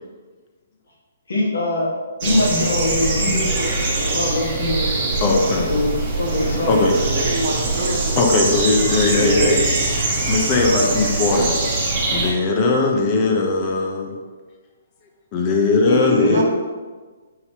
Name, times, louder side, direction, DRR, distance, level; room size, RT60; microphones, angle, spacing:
voice 1, 1.3-1.9 2.2-4.8 5.7-7.0 9.1-9.6 15.9-16.4, left 2 dB, 80° left, -4 dB, 1.5 m, -22 dB
sound 1, 2.2-12.3, right 2 dB, 35° right, 1.1 m, -22 dB
voice 2, 5.0-5.7 6.7-6.9 8.2-9.6 10.2-11.5 12.1-14.1 15.3-16.4, left 3 dB, 30° left, 1 dB, 0.7 m, -19 dB
voice 3, 7.1-8.4 8.9-9.5 16.3-16.4, right 1 dB, 60° right, 0 dB, 1.0 m, -27 dB
5.7 x 2.9 x 2.9 m, 1.4 s
hypercardioid pair, 145°, 0 cm